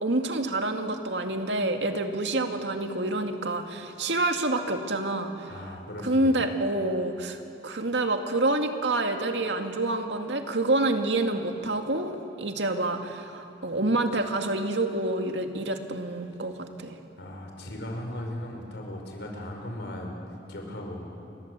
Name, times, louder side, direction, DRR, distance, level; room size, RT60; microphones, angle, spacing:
voice 1, 0.0-5.5 6.0-16.9, right 2 dB, 75° right, 5 dB, 2.2 m, -27 dB
voice 2, 5.5-6.4 17.2-20.2 20.5-21.1, left 1 dB, 70° left, 1 dB, 5.5 m, -37 dB
29.0 x 24.0 x 8.2 m, 2.7 s
head